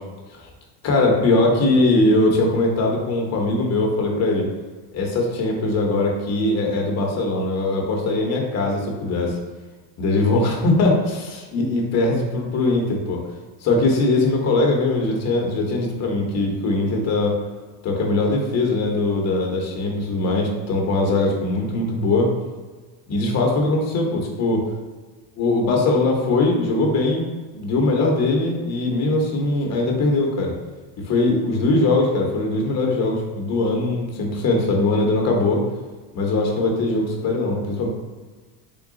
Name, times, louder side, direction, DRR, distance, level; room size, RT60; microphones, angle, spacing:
voice 1, 0.8-4.5 4.9-9.4 10.0-13.2 13.6-17.4 17.8-22.3 23.1-24.6 25.4-27.3 27.5-30.5 31.1-35.6 36.1-37.9, left 2 dB, 30° left, 0 dB, 0.9 m, -21 dB
3.8 x 2.3 x 3.6 m, 1.3 s
supercardioid pair, 135°, 50 cm